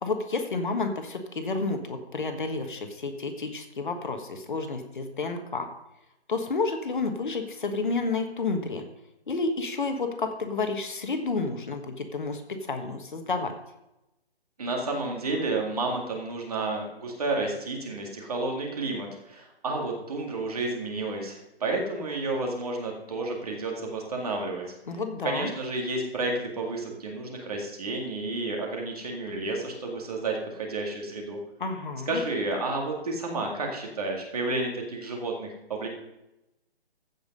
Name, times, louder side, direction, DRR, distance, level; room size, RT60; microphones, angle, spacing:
voice 1, 0.0-5.7 6.3-8.8 9.3-13.5 24.9-25.5 31.6-32.2, left 3 dB, 50° left, 6 dB, 1.3 m, -30 dB
voice 2, 14.6-24.6 25.2-31.4 32.1-35.9, right 2 dB, 35° right, 1 dB, 2.1 m, -31 dB
15.0 x 5.4 x 5.3 m, 0.92 s
hypercardioid pair, 170°, 32 cm